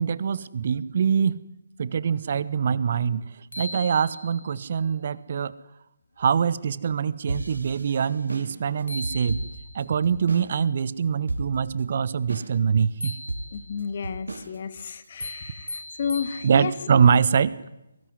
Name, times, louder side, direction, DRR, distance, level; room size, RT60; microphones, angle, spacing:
voice 1, 0.0-1.4 1.8-5.5 6.2-9.4 9.7-13.2 16.4-17.6, right 7 dB, 45° right, 18 dB, 1.1 m, -24 dB
sound 1, 3.1-3.2 3.5-4.6 8.5-8.6 8.9-9.9 13.0-13.9 15.2-16.9, left 1 dB, 85° left, 2.3 m, -38 dB
sound 2, 7.3-10.5 10.8-10.9 11.3-11.8 12.3-12.8 13.3-15.1, right 2 dB, 70° right, 4.6 m, -34 dB
voice 2, 13.5-16.7, left 7 dB, 45° left, 12 dB, 2.1 m, -32 dB
23.0 x 19.5 x 9.7 m, 0.89 s
figure-of-eight pair, 145°, 0 cm